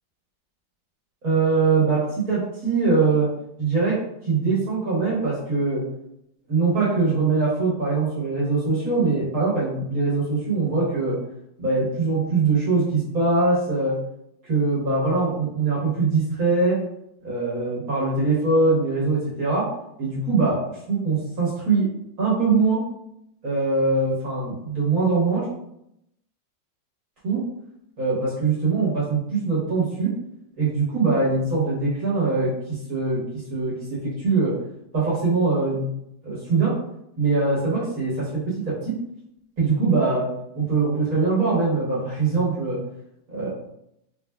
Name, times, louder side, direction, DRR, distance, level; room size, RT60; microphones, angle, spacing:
voice 1, 1.2-3.3 3.6-4.0 4.2-5.8 6.5-11.2 11.6-13.9 14.4-16.8 17.2-19.7 20.0-20.6 20.9-21.9 22.2-22.8 23.4-25.5 27.2-27.4 28.0-30.1 30.6-33.2 33.5-34.5 34.9-35.9 36.2-36.7 37.2-38.9 39.6-40.2 40.5-42.8 43.3-43.5, right 4 dB, 50° right, -7 dB, 1.6 m, -22 dB
3.8 x 3.3 x 2.3 m, 0.77 s
omnidirectional pair, 2.1 m